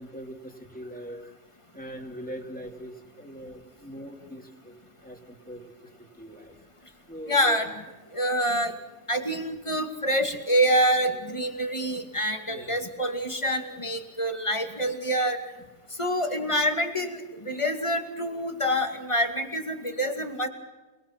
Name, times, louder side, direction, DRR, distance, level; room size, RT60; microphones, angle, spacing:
voice 1, 0.0-1.4 1.7-6.5 7.1-7.6 10.7-11.2 12.5-12.8, equal, 5° left, 2 dB, 3.1 m, -41 dB
voice 2, 7.3-7.7 8.1-8.7 9.1-15.4 16.0-20.5, equal, 25° left, 5 dB, 2.4 m, -26 dB
29.5 x 21.0 x 6.1 m, 1.2 s
omnidirectional pair, 1.3 m